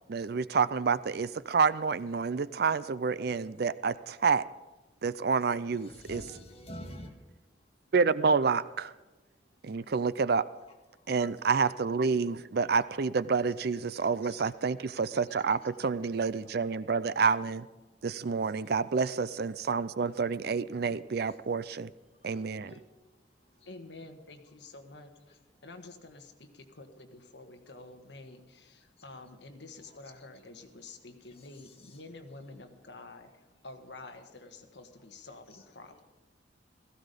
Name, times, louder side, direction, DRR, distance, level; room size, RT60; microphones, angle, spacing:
voice 1, 0.1-4.4 5.0-6.2 7.9-8.9 9.6-10.4 11.1-17.7 18.0-21.9 22.2-22.7, right 5 dB, 55° right, 16 dB, 0.5 m, -28 dB
voice 2, 5.9-7.1 14.3-14.4 22.3-22.8, equal, 30° left, 2 dB, 1.8 m, -45 dB
voice 3, 23.6-36.1, left 2 dB, 65° left, 6 dB, 1.5 m, -49 dB
16.5 x 15.0 x 5.2 m, 1.1 s
head